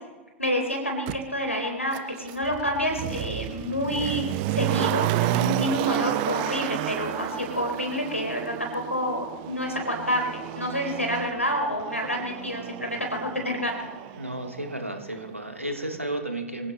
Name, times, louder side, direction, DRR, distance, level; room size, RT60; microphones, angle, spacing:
voice 1, 0.4-4.3 4.5-13.7, equal, 90° left, 2 dB, 4.0 m, -28 dB
Motor vehicle (road), 1.1-1.2 1.9-14.8 15.1-15.2, right 15 dB, 45° right, 0.7 m, -31 dB
voice 2, 14.2-16.7, right 1 dB, 85° right, 4 dB, 2.1 m, -33 dB
26.0 x 16.0 x 3.1 m, 1.3 s
figure-of-eight pair, 95°, 7 cm